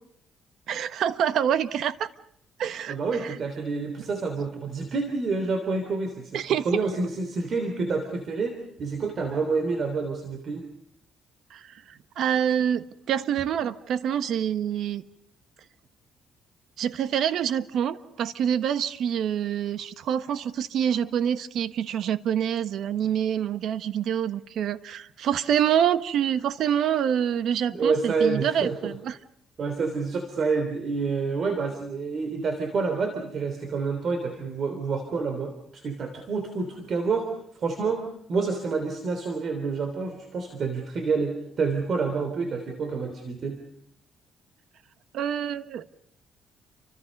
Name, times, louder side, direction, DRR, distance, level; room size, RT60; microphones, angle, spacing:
voice 1, 0.7-2.1 2.6-3.0 3.2-3.3 6.3-6.6 11.5-15.0 16.8-29.2 45.1-46.0, right 9 dB, 70° right, 12 dB, 1.2 m, -26 dB
voice 2, 2.9-6.4 6.6-10.6 27.7-28.9 29.6-37.3 37.6-38.0 38.3-43.6, right 4 dB, 45° right, 6 dB, 3.3 m, -28 dB
30.0 x 25.0 x 5.4 m, 0.70 s
cardioid pair, 125°, 0 cm